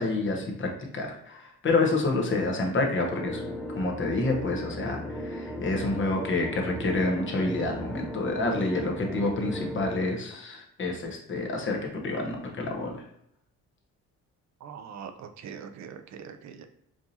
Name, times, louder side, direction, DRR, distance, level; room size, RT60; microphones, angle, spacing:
voice 1, 0.0-3.4 3.7-11.8 12.0-12.9, left 2 dB, 40° left, 1 dB, 1.0 m, -28 dB
sound 1, 3.1-10.0, left 1 dB, ahead, 0.5 m, -36 dB
voice 2, 14.6-16.7, right 7 dB, 65° right, 7 dB, 0.5 m, -42 dB
4.7 x 2.6 x 2.7 m, 0.75 s
cardioid pair, 90°, 30 cm